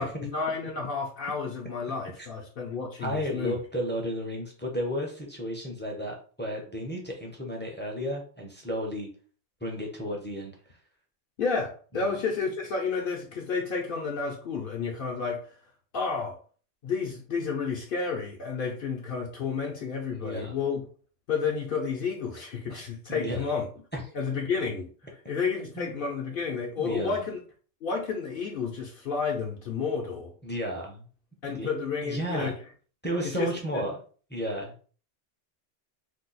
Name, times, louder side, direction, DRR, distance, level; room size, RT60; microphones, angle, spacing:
voice 1, 0.0-3.6 11.4-15.6 15.9-16.4 16.8-20.8 21.3-23.6 24.1-24.9 25.3-27.4 27.8-30.3 31.4-32.6 33.2-33.8, left 5 dB, 60° left, 0 dB, 0.7 m, -31 dB
voice 2, 3.0-9.1 9.6-10.5 11.9-12.1 20.1-20.6 23.1-23.5 23.9-24.0 25.7-26.0 26.8-27.2 30.4-31.1 31.5-31.7 32.0-32.5 33.0-34.0 34.3-34.9, equal, 15° left, 0 dB, 0.4 m, -33 dB
2.7 x 2.3 x 3.9 m, 0.42 s
omnidirectional pair, 1.2 m